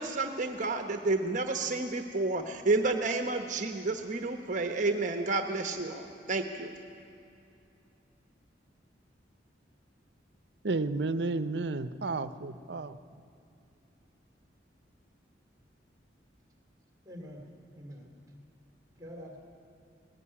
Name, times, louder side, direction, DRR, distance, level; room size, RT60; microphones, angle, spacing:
voice 1, 0.0-6.7, right 3 dB, 45° right, 6 dB, 1.0 m, -30 dB
voice 2, 10.6-13.0, right 3 dB, 65° right, 13 dB, 0.7 m, -32 dB
voice 3, 17.0-18.1 18.9-19.4, equal, 20° right, 2 dB, 2.7 m, -46 dB
19.5 x 16.0 x 9.8 m, 2.6 s
head